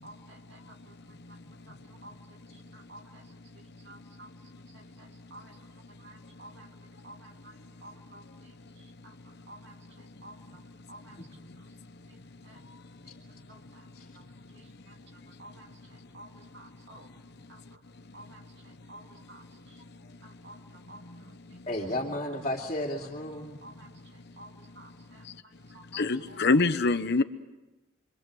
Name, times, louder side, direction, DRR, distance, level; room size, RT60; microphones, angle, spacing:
voice 1, 0.0-11.2 11.6-11.7 12.1-12.6 13.0-13.9 14.1-17.1 17.5-17.8 18.1-19.8 20.2-21.6 22.9-23.1 23.6-26.4, right 2 dB, 60° right, 3 dB, 2.9 m, -53 dB
voice 2, 21.7-23.6, left 1 dB, 35° left, -3 dB, 2.6 m, -33 dB
voice 3, 25.9-27.2, left 3 dB, 55° left, 9 dB, 1.1 m, -24 dB
29.0 x 24.0 x 7.8 m, 1.1 s
head